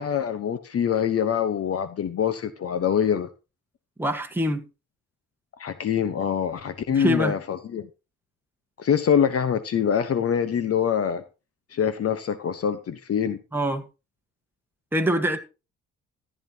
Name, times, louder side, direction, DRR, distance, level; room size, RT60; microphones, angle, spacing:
voice 1, 0.0-3.3 5.6-7.9 8.8-11.2 11.7-13.4, left 8 dB, 50° left, 1.0 m, -24 dB
voice 2, 4.0-4.6 6.9-7.4 13.5-13.8 14.9-15.4, equal, 5° right, 1.5 m, -24 dB
14.5 x 9.8 x 2.9 m
cardioid pair, 90°, 30 cm